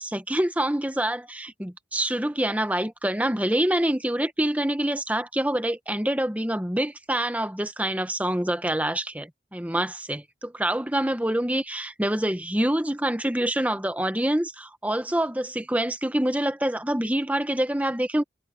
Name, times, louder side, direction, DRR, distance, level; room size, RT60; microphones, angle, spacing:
voice 1, 0.0-18.2, right 1 dB, 10° right, 1.0 m, -26 dB
head